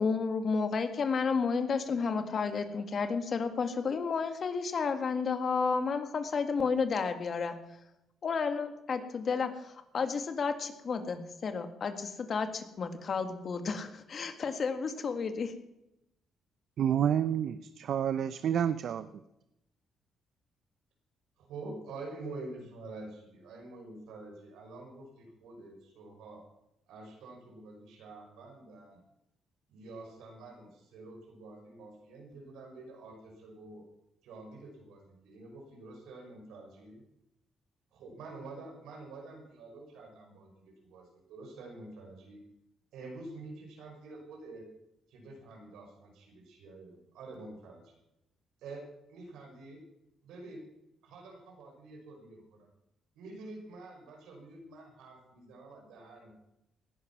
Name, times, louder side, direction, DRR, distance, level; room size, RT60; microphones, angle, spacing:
voice 1, 0.0-7.5 8.2-15.5, left 5 dB, 50° left, 8 dB, 2.0 m, -31 dB
voice 2, 16.8-19.1, right 9 dB, 65° right, 13 dB, 0.7 m, -29 dB
voice 3, 21.5-26.4 26.9-29.0 29.7-33.8 34.2-37.0 37.9-42.4 42.9-44.6 45.1-48.0 48.6-49.8 50.2-50.6 51.0-52.7 53.2-56.3, right 2 dB, 85° right, 1 dB, 6.0 m, -47 dB
18.5 x 11.0 x 6.1 m, 0.86 s
cardioid pair, 90°, 0 cm